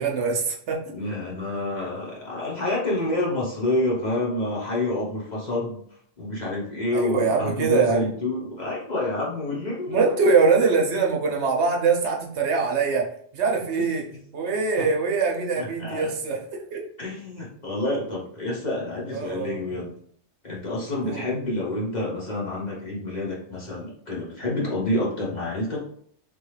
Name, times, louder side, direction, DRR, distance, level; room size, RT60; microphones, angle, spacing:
voice 1, 0.0-0.8 6.9-8.1 9.9-13.1 13.3-14.0 14.3-16.4 16.7-16.8 19.1-19.6 21.0-21.2, right 4 dB, 70° right, 0 dB, 0.9 m, -23 dB
voice 2, 0.9-5.8 6.2-10.1 13.8-13.9 14.8-14.9 15.6-16.1 17.0-19.9 20.4-25.8, left 1 dB, 40° left, -5 dB, 0.9 m, -28 dB
3.3 x 2.3 x 3.1 m, 0.62 s
omnidirectional pair, 1.2 m